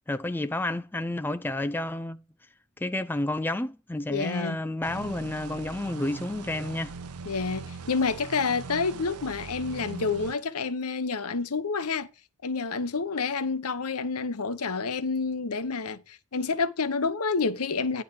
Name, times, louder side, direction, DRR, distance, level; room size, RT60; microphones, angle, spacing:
voice 1, 0.1-2.2 2.8-6.9, left 1 dB, 10° left, 0.4 m, -30 dB
voice 2, 4.1-4.6 7.3-12.1 12.4-18.0, left 4 dB, 80° left, 0.9 m, -29 dB
sound 1, 4.8-10.3, right 4 dB, 85° right, 0.8 m, -41 dB
10.0 x 3.9 x 7.4 m
head